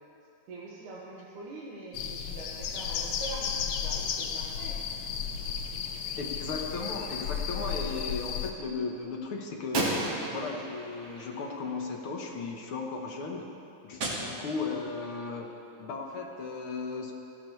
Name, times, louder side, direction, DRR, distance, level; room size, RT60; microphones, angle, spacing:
voice 1, 0.5-4.8, right 3 dB, 75° right, -6 dB, 3.0 m, -43 dB
sound 1, 1.9-8.5, left 7 dB, 70° left, 2.1 m, -34 dB
voice 2, 6.2-10.0 10.3-13.5 13.8-15.5 15.8-17.1, left 4 dB, 55° left, 1 dB, 1.7 m, -36 dB
Gunshot gunfire, 6.8-7.8 9.7-12.1 14.0-15.0, right 2 dB, 50° right, 2.9 m, -36 dB
30.0 x 11.5 x 3.3 m, 2.8 s
omnidirectional pair, 3.6 m